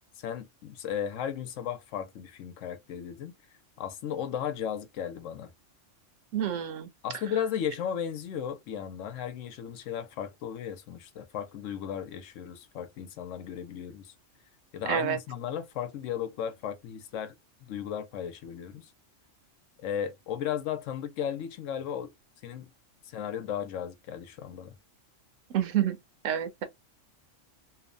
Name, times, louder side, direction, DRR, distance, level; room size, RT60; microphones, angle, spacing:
voice 1, 0.2-3.3 3.8-5.5 7.0-14.1 14.7-17.3 17.6-18.9 19.8-22.1 22.4-22.7 23.0-24.7, left 9 dB, 80° left, 1.0 m, -35 dB
voice 2, 6.3-6.9 14.9-15.2 25.5-26.0 26.2-26.6, right 9 dB, 80° right, 1.0 m, -28 dB
2.8 x 2.1 x 2.5 m
omnidirectional pair, 1.3 m